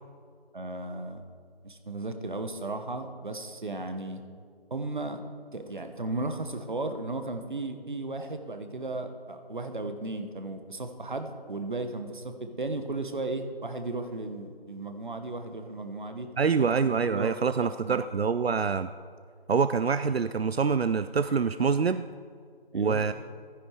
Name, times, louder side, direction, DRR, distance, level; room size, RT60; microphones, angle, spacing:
voice 1, 0.5-1.2 1.6-4.2 4.7-5.2 5.5-16.3 16.7-18.0 22.7-23.0, right 2 dB, 55° right, 7 dB, 1.3 m, -35 dB
voice 2, 16.4-18.9 19.5-22.0 22.7-23.1, right 5 dB, 85° right, 12 dB, 0.5 m, -25 dB
15.0 x 10.0 x 4.8 m, 2.1 s
figure-of-eight pair, 165°, 30 cm